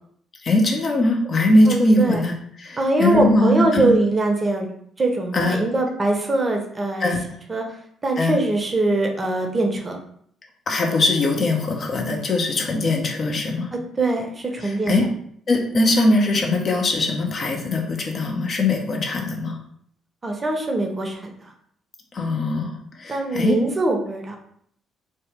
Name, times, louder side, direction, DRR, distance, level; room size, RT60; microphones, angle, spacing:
voice 1, 0.4-3.9 5.3-5.6 7.0-7.2 8.2-8.4 10.7-13.7 14.6-15.1 15.5-19.6 22.1-23.5, left 2 dB, 40° left, 1 dB, 0.5 m, -21 dB
voice 2, 1.7-2.2 2.8-4.7 5.0-7.1 7.5-7.6 8.0-10.0 14.0-15.1 20.2-21.2 23.1-24.4, right 2 dB, 30° right, 2 dB, 0.6 m, -22 dB
2.7 x 2.3 x 3.4 m, 0.65 s
figure-of-eight pair, 45°, 0 cm